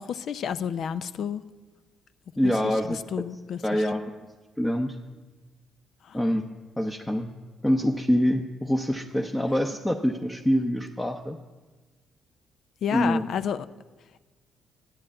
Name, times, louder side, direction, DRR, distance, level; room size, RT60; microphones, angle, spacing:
voice 1, 0.0-1.4 2.4-2.5 3.1-3.6 12.8-13.6, left 8 dB, 65° left, 13 dB, 0.5 m, -29 dB
voice 2, 2.4-3.0 3.6-4.0 4.6-5.0 6.1-6.4 6.8-7.3 7.6-11.4 12.9-13.3, equal, 10° left, 2 dB, 0.8 m, -25 dB
11.0 x 8.9 x 8.6 m, 1.3 s
cardioid pair, 90°, 0 cm